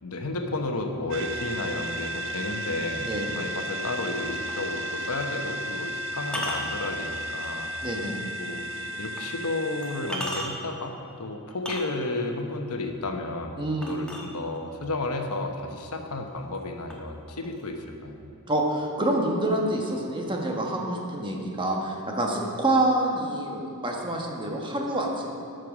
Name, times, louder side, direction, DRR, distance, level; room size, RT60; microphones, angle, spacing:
voice 1, 0.0-7.7 8.4-10.9 11.2-13.5 13.9-18.3, left 2 dB, 80° left, 4 dB, 1.1 m, -32 dB
sound 1, 1.1-10.1, equal, 60° right, 0.6 m, -34 dB
voice 2, 3.0-3.3 7.8-8.2 13.6-13.9 18.5-25.3, right 1 dB, 20° right, 0 dB, 1.3 m, -27 dB
sound 2, 4.5-4.7 6.2-7.7 8.2-8.3 9.2-9.3 9.8-10.8 11.5-12.3 13.8-14.8 15.7-15.8 16.2-16.6 16.9-17.9, equal, 5° left, 1.2 m, -36 dB
12.5 x 6.5 x 6.2 m, 2.6 s
head